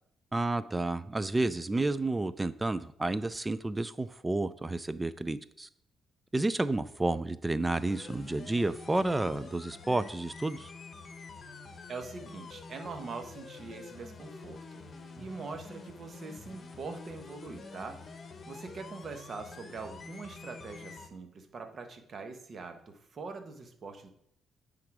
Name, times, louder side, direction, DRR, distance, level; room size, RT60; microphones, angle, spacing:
voice 1, 0.3-5.7 6.3-10.7, right 2 dB, 15° right, 15 dB, 0.4 m, -31 dB
sound 1, 7.7-21.1, left 4 dB, 40° left, 1.0 m, -47 dB
voice 2, 11.9-14.8 15.2-24.1, right 4 dB, 45° right, 6 dB, 1.1 m, -43 dB
9.4 x 3.8 x 4.7 m, 0.71 s
cardioid pair, 90°, 0 cm